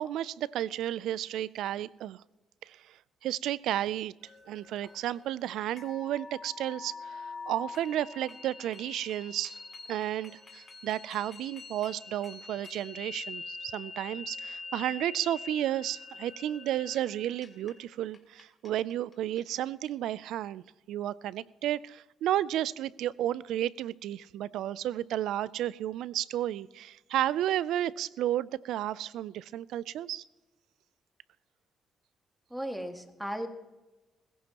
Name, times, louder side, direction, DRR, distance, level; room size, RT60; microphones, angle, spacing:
voice 1, 0.0-2.2 2.6-4.1 4.5-9.5 9.9-30.2, right 12 dB, 85° right, 20 dB, 0.4 m, -32 dB
sound 1, 4.2-20.1, left 4 dB, 35° left, 2.3 m, -45 dB
voice 2, 32.5-33.5, equal, 5° right, 5 dB, 1.9 m, -36 dB
21.0 x 15.5 x 3.0 m, 1.1 s
cardioid pair, 90°, 0 cm